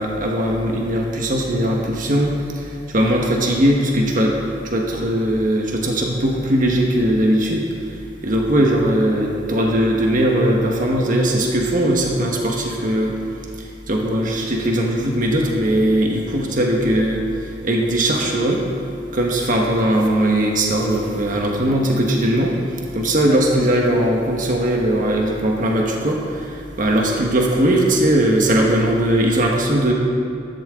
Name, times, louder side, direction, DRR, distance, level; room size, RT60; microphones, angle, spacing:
voice 1, 0.0-2.3 2.9-4.4 4.6-7.6 8.2-13.2 13.9-17.2 17.6-18.6 19.1-22.6 22.9-29.9, right 1 dB, 50° right, 0 dB, 1.4 m, -19 dB
14.5 x 12.0 x 3.7 m, 2.4 s
head